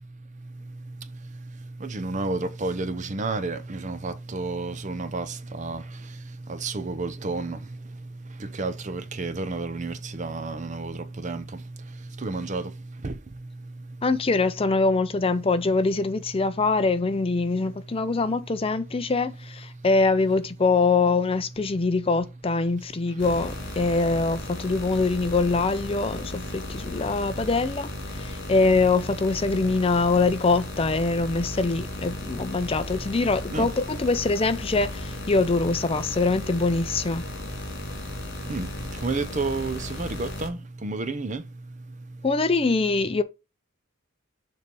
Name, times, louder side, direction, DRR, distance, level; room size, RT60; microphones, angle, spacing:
voice 1, 1.8-5.8 6.5-7.6 8.6-11.4 12.2-12.7 13.0-13.1 33.5-33.7 38.5-38.7 39.0-41.4, right 3 dB, 35° right, 0.6 m, -30 dB
voice 2, 14.0-37.3 42.2-43.2, left 3 dB, 25° left, 0.5 m, -24 dB
sound 1, 23.2-40.5, left 1 dB, 55° left, 2.7 m, -36 dB
6.9 x 3.3 x 5.3 m
head